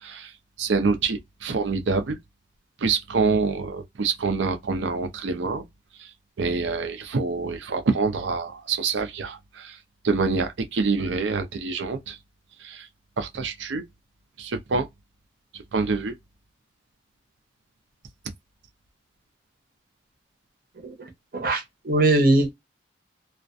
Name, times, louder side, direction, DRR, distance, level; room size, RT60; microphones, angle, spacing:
voice 1, 0.0-0.3 0.6-2.2 2.8-5.6 6.0-6.1 6.4-9.8 10.0-12.2 12.6-12.9 13.2-13.8 14.4-14.9 15.7-16.1, right 4 dB, 80° right, 0.5 m, -26 dB
voice 2, 21.3-22.5, right 2 dB, 50° right, 0.7 m, -21 dB
2.4 x 2.1 x 2.4 m
head